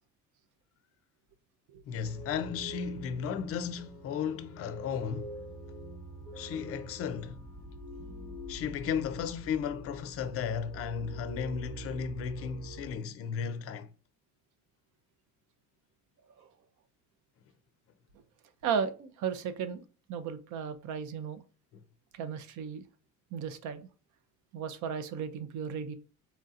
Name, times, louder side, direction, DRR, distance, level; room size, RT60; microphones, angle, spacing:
voice 1, 1.9-5.4 6.3-7.4 8.5-13.9 21.7-21.8, left 7 dB, 45° left, 0.4 m, -35 dB
sound 1, 2.0-12.9, right 1 dB, 5° left, 1.1 m, -45 dB
voice 2, 18.6-21.4 22.1-22.8 23.3-23.9 24.5-25.9, right 7 dB, 65° right, 0.6 m, -35 dB
4.3 x 2.7 x 2.4 m
cardioid pair, 165°, 32 cm